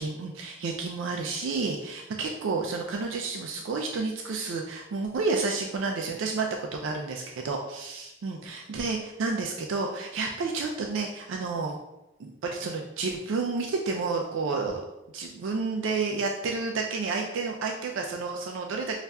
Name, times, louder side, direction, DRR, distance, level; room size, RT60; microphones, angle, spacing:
voice 1, 0.0-11.8 12.2-14.8 15.1-18.9, right 4 dB, 75° right, 1 dB, 0.4 m, -30 dB
5.3 x 2.4 x 2.2 m, 0.93 s
head